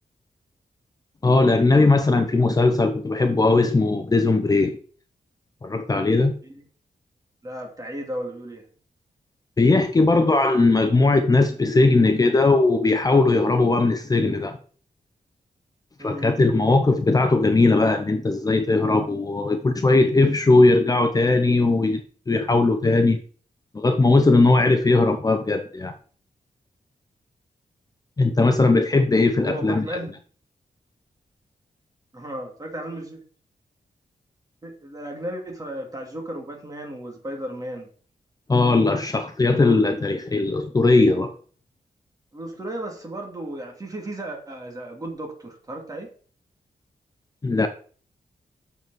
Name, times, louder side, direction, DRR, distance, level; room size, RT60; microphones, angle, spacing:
voice 1, 1.2-4.8 5.6-6.3 9.6-14.6 16.0-22.0 22.3-23.2 23.7-25.9 28.2-30.0 38.5-41.3 47.4-47.7, left 3 dB, 25° left, 0.7 m, -19 dB
voice 2, 7.4-8.7 16.0-16.4 29.3-30.1 32.1-33.2 34.6-37.9 42.3-46.1, right 1 dB, 25° right, 2.7 m, -34 dB
6.9 x 6.9 x 6.1 m
wide cardioid pair, 150°, 15 cm